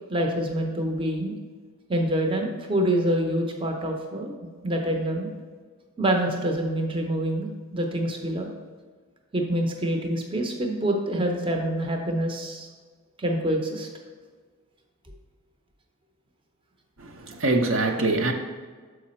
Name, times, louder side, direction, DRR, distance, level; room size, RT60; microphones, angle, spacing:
voice 1, 0.1-1.3 1.9-4.4 4.6-5.3 6.0-8.5 9.3-12.7 13.2-13.9, right 1 dB, 25° right, 2 dB, 0.6 m, -26 dB
voice 2, 17.0-18.3, right 2 dB, 60° right, 3 dB, 0.6 m, -24 dB
6.9 x 4.9 x 4.2 m, 1.5 s
head